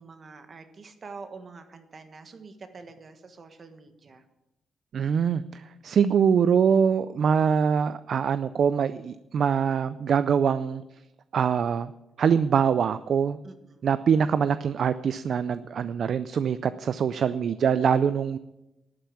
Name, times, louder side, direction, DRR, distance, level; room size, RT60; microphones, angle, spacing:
voice 1, 0.0-4.2 13.4-13.9, right 4 dB, 40° right, 8 dB, 1.5 m, -46 dB
voice 2, 4.9-10.8 11.3-11.9 12.2-13.4 13.8-18.4, right 7 dB, 60° right, 14 dB, 0.4 m, -24 dB
11.5 x 9.2 x 7.3 m, 0.94 s
cardioid pair, 105°, 0 cm